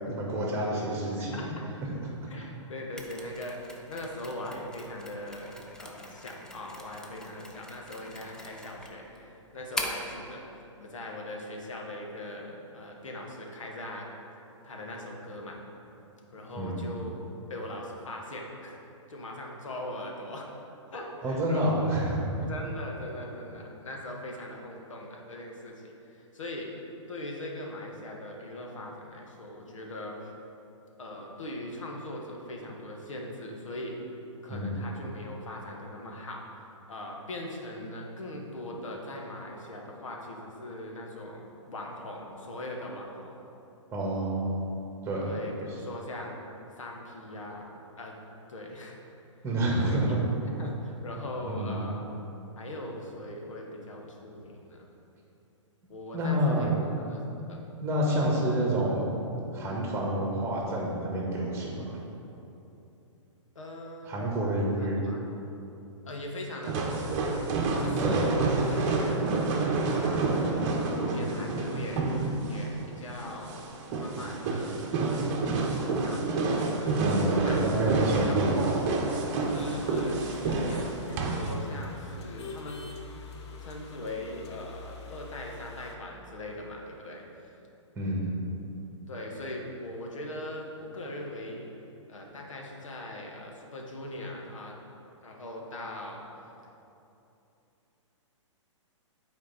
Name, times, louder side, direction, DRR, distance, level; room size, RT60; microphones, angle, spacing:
voice 1, 0.0-1.4 16.6-16.8 21.2-22.2 34.5-34.8 43.9-44.5 45.0-45.3 49.4-50.2 51.4-51.8 56.1-56.8 57.8-59.1 59.5-61.8 64.1-65.0 68.0-68.3 77.0-78.8 87.9-88.4, right 1 dB, 15° right, -3 dB, 1.6 m, -28 dB
voice 2, 1.2-1.6 2.3-10.5 10.8-14.1 14.6-15.6 16.3-17.2 17.5-18.8 19.1-20.5 20.9-21.9 22.5-26.7 27.1-30.3 31.0-34.0 34.4-36.6 36.9-43.4 45.2-46.4 46.8-47.7 48.0-48.2 48.5-49.0 49.9-50.0 50.6-52.0 52.6-54.8 55.9-57.2 57.5-57.6 63.5-64.5 64.8-65.2 66.0-67.5 67.8-70.3 70.9-73.7 74.0-74.9 75.4-76.2 76.5-77.6 78.3-78.4 79.4-83.2 83.6-87.5 89.1-91.7 92.1-94.8 95.2-96.2, left 1 dB, 80° left, 0 dB, 1.4 m, -40 dB
Mechanisms, 3.0-10.1, left 1 dB, 5° left, 0.5 m, -42 dB
sound 1, 66.6-81.5, right 3 dB, 35° right, 0.9 m, -28 dB
sound 2, 79.4-85.9, left 4 dB, 55° left, 0.9 m, -46 dB
8.6 x 4.4 x 4.2 m, 2.9 s
hypercardioid pair, 130°, 16 cm